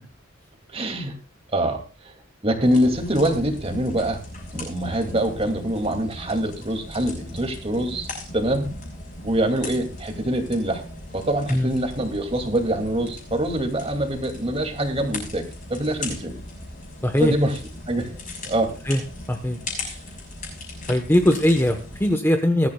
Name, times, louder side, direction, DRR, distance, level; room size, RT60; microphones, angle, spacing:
voice 1, 0.7-1.1 1.5-2.1 2.4-4.2 4.5-8.7 9.2-10.8 11.1-16.4 17.2-17.5 17.9-18.1 18.4-18.7 19.8-20.0, right 1 dB, 30° right, 5 dB, 2.4 m, -24 dB
sound 1, 2.6-22.1, left 2 dB, 40° left, 6.1 m, -38 dB
voice 2, 17.0-17.3 18.9-19.0 19.3-19.6 20.9-22.7, left 1 dB, 10° left, 6 dB, 1.0 m, -20 dB
20.5 x 13.0 x 2.3 m, 0.31 s
head